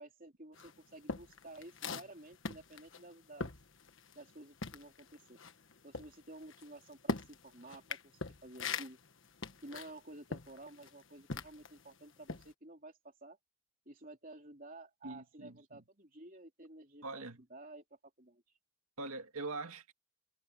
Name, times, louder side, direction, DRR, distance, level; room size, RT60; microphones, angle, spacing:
voice 1, 0.0-3.5 4.1-5.4 5.8-9.0 9.6-13.4 13.9-17.2 17.5-17.9 18.2-18.4, right 2 dB, 40° right, 3.5 m, -52 dB
sound 1, 0.6-4.3 4.6-11.8 12.2-12.5, left 3 dB, 60° left, 1.4 m, -42 dB
voice 2, 15.0-15.8 17.0-17.4 19.0-19.9, right 3 dB, 80° right, 2.0 m, -43 dB
head